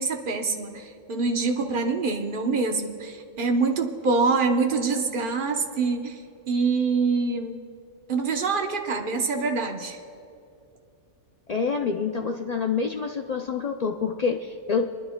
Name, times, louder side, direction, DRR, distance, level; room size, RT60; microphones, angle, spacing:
voice 1, 0.0-6.2 6.5-7.6 8.1-10.0, right 4 dB, 45° right, 3 dB, 1.0 m, -25 dB
voice 2, 11.5-14.8, left 5 dB, 75° left, 3 dB, 0.3 m, -27 dB
29.0 x 10.5 x 2.2 m, 2.5 s
omnidirectional pair, 1.3 m